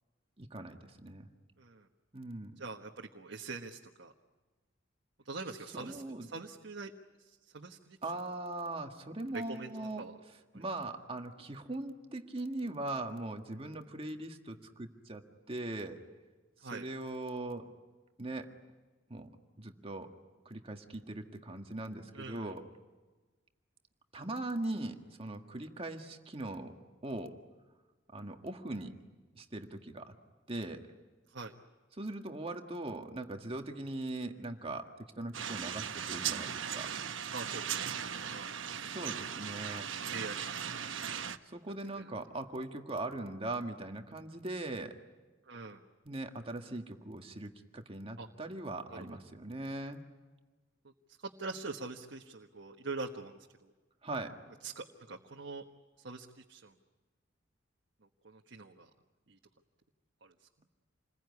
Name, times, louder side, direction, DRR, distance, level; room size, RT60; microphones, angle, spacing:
voice 1, 0.4-1.3 2.1-2.5 5.7-6.3 8.0-10.1 10.5-16.0 16.6-17.7 18.2-18.5 19.1-19.3 19.6-20.1 20.5-22.6 24.1-26.7 27.0-27.4 28.1-28.9 29.4-30.1 30.5-30.8 32.0-36.9 38.7-39.9 41.4-45.0 46.1-50.0 54.0-54.4, right 2 dB, 30° right, 4 dB, 1.7 m, -40 dB
voice 2, 1.6-1.9 2.6-4.1 5.2-6.9 7.2-8.0 9.3-10.1 10.5-10.6 16.6-16.9 22.1-22.6 31.3-31.5 37.3-38.5 39.0-39.2 40.1-40.3 40.7-40.9 41.9-42.1 45.5-45.8 48.2-48.3 48.9-49.2 51.2-53.7 54.6-55.6 56.0-56.7 58.2-58.9 59.3-59.4 60.2-60.3, right 3 dB, 65° right, 1 dB, 1.4 m, -44 dB
sound 1, 35.3-41.4, right 8 dB, 80° right, 1.0 m, -38 dB
28.0 x 21.5 x 9.6 m, 1.3 s
head